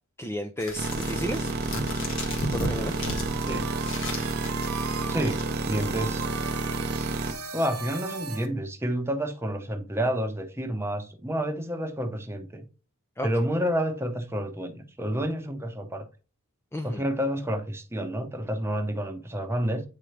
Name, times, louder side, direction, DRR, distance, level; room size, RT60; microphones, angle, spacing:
voice 1, 0.2-1.5 2.5-3.0 13.2-13.3 16.7-17.0, left 1 dB, 10° left, 0.4 m, -32 dB
sound 1, 0.6-5.9, left 1 dB, 60° left, 1.6 m, -35 dB
sound 2, 0.8-7.3, right 2 dB, 45° right, 0.6 m, -30 dB
sound 3, 2.7-8.5, right 6 dB, 80° right, 1.0 m, -38 dB
voice 2, 5.1-6.3 7.5-12.7 13.2-16.1 16.8-19.8, equal, 10° right, 0.8 m, -29 dB
8.9 x 3.7 x 3.3 m
head